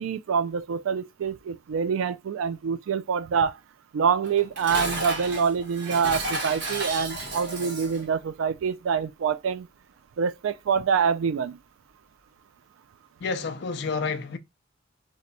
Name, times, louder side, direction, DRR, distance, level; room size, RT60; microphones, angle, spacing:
voice 1, 0.0-3.5 3.9-9.7 10.2-11.6, right 6 dB, 85° right, 0.3 m, -26 dB
Dishes pots and pans, 4.2-8.1, right 2 dB, 60° right, 1.1 m, -32 dB
voice 2, 13.2-14.4, left 4 dB, 55° left, 0.4 m, -29 dB
2.8 x 2.2 x 3.9 m
head